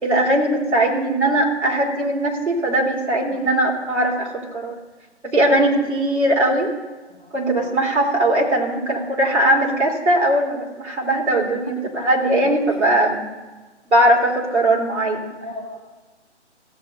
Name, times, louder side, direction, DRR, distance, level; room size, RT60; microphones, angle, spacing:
voice 1, 0.0-4.7 5.3-6.7 7.3-13.2 13.9-15.2, right 1 dB, 70° right, -1 dB, 3.7 m, -19 dB
voice 2, 7.1-7.7 12.0-12.3 12.7-12.8 15.4-15.8, left 1 dB, 10° right, -3 dB, 0.7 m, -39 dB
17.0 x 7.9 x 4.1 m, 1.2 s
hypercardioid pair, 160°, 35 cm